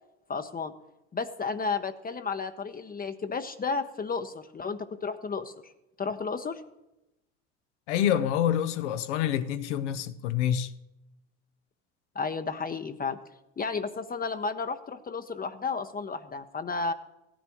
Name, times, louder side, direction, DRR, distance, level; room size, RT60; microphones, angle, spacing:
voice 1, 0.3-0.7 1.1-5.7 6.0-6.6 12.1-13.2 13.6-16.9, left 4 dB, 25° left, 0.8 m, -32 dB
voice 2, 7.9-10.7, left 10 dB, 80° left, 0.7 m, -27 dB
16.0 x 10.0 x 3.0 m
hypercardioid pair, 65°, 35 cm